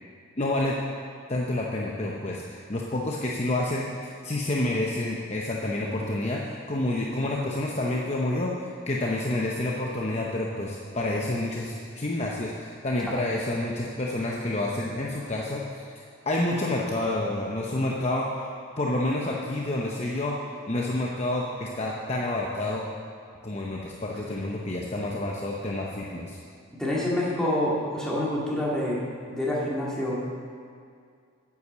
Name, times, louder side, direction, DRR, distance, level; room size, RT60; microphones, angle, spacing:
voice 1, 0.4-0.8 1.3-15.9 16.3-18.3 18.8-20.4 20.7-22.8 23.4-26.4, left 1 dB, 30° left, -2 dB, 0.8 m, -29 dB
voice 2, 26.8-30.2, left 1 dB, 5° left, -6 dB, 2.1 m, -27 dB
9.7 x 8.4 x 6.9 m, 2.3 s
head